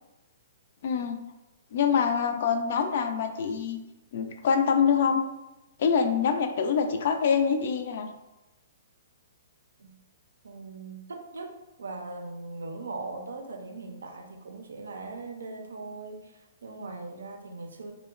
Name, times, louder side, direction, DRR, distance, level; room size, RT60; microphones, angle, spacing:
voice 1, 0.8-1.2 1.7-3.8 4.1-5.2 5.8-8.1, left 6 dB, 60° left, 6 dB, 0.3 m, -25 dB
voice 2, 10.4-17.9, right 3 dB, 85° right, 3 dB, 0.4 m, -40 dB
2.8 x 2.1 x 2.3 m, 0.98 s
hypercardioid pair, 130°, 0 cm